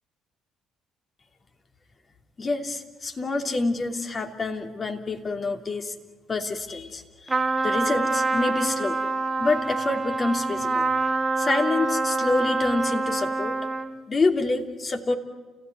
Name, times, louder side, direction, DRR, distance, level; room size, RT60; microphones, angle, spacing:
voice 1, 2.4-5.9 6.3-9.0 9.4-10.9 11.4-13.6 14.1-15.1, left 3 dB, 40° left, 4 dB, 2.9 m, -27 dB
Trumpet, 7.3-14.0, right 3 dB, 25° right, 1.3 m, -26 dB
29.5 x 17.0 x 9.4 m, 1.3 s
hypercardioid pair, 55°, 0 cm